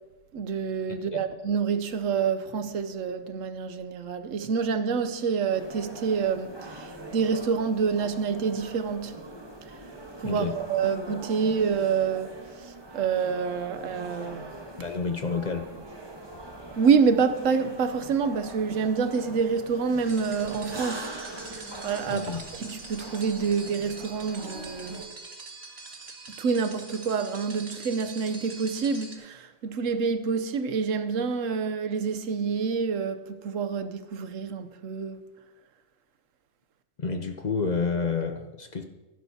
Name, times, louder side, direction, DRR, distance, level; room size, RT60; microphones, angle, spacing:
voice 1, 0.3-9.2 9.7-9.8 10.2-14.5 16.8-21.1 21.5-25.0 26.4-35.3, right 6 dB, 90° right, 1.2 m, -27 dB
sound 1, 5.5-25.1, right 2 dB, 20° right, 1.2 m, -42 dB
voice 2, 10.2-10.6 14.8-15.7 22.0-22.4 37.0-38.8, left 5 dB, 45° left, 0.7 m, -29 dB
sound 2, 20.0-29.2, right 3 dB, 55° right, 1.7 m, -44 dB
16.0 x 11.0 x 2.8 m
omnidirectional pair, 1.3 m